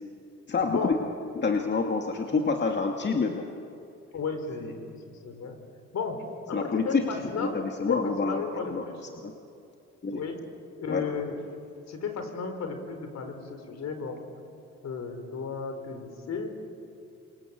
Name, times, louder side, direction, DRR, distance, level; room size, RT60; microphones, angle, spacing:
voice 1, 0.5-1.0 1.4-3.5 6.5-7.0 7.4-8.8 9.2-9.3 10.0-10.2 10.9-11.0, left 4 dB, 35° left, 3 dB, 2.1 m, -27 dB
voice 2, 4.1-5.6 5.9-6.2 6.5-9.0 10.1-10.4 10.8-11.4 11.9-14.2 14.8-16.5, left 5 dB, 60° left, 6 dB, 4.6 m, -34 dB
28.5 x 25.0 x 8.3 m, 2.6 s
cardioid pair, 90°, 30 cm